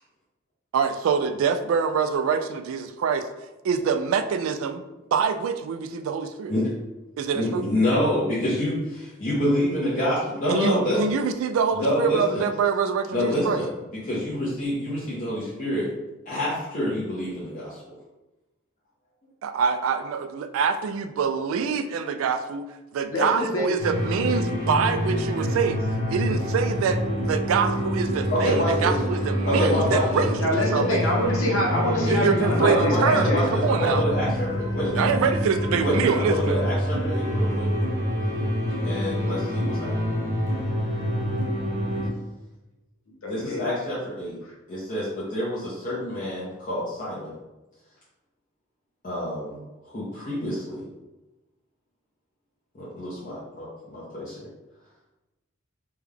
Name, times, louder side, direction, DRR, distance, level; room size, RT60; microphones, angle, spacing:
voice 1, 0.7-3.3 3.6-4.8 5.1-6.5 7.2-7.6 10.5-13.6 19.4-31.0 32.1-34.0 34.9-36.6, right 6 dB, 75° right, 10 dB, 0.3 m, -25 dB
voice 2, 7.3-11.2 11.7-12.4 13.1-13.7 14.0-15.9 16.3-18.0 28.3-28.9 29.5-30.2 32.6-35.1 35.8-37.7 38.8-40.2 43.2-44.4 44.7-47.3 49.0-49.6 49.9-50.8 52.7-54.5, left 1 dB, 40° left, -9 dB, 0.7 m, -27 dB
voice 3, 23.1-23.8 30.4-33.5 43.2-43.6 44.4-44.5, left 1 dB, 80° left, -2 dB, 0.9 m, -25 dB
sound 1, 23.8-42.1, equal, 60° right, 0.7 m, -26 dB
3.3 x 2.2 x 3.4 m, 1.0 s
head